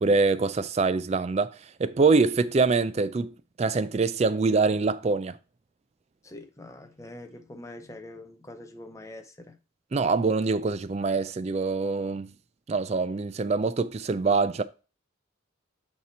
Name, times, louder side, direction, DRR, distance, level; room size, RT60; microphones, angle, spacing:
voice 1, 0.0-5.4 9.9-12.3 12.7-14.6, right 4 dB, 30° right, 0.3 m, -24 dB
voice 2, 6.2-9.6, left 1 dB, 15° left, 0.7 m, -44 dB
8.4 x 3.0 x 4.2 m
head